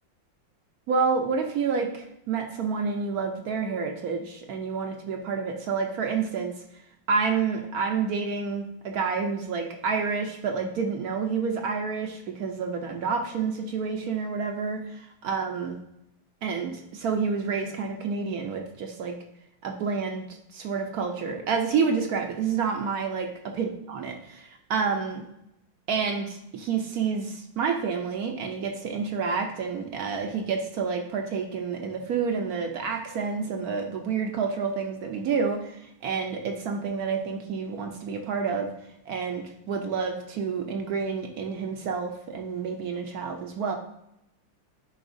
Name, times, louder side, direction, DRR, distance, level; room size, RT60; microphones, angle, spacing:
voice 1, 0.9-6.5 7.1-15.8 16.4-19.2 19.6-25.2 25.9-38.7 39.1-43.8, right 5 dB, 65° right, 4 dB, 0.9 m, -29 dB
9.8 x 3.9 x 2.6 m, 0.82 s
omnidirectional pair, 2.1 m